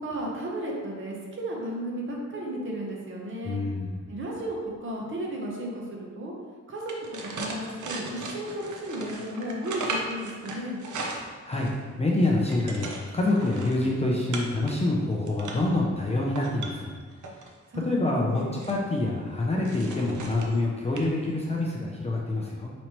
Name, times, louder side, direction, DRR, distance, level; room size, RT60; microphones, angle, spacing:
voice 1, 0.0-3.6 4.1-6.3 6.7-6.9 7.2-10.8 17.7-18.6, right 1 dB, 45° right, -2 dB, 0.7 m, -34 dB
voice 2, 3.4-4.0 11.2-11.7 12.0-12.9 13.1-16.9 17.9-22.7, left 2 dB, 20° left, -3 dB, 0.4 m, -26 dB
sound 1, 6.8-11.8 12.2-13.8 14.3-14.7 15.1-15.7 16.2-17.5 18.2-18.8 19.7-20.6 21.0-21.1 21.4-21.6, right 3 dB, 85° right, 0.6 m, -37 dB
5.1 x 3.0 x 2.9 m, 1.5 s
wide cardioid pair, 180°, 29 cm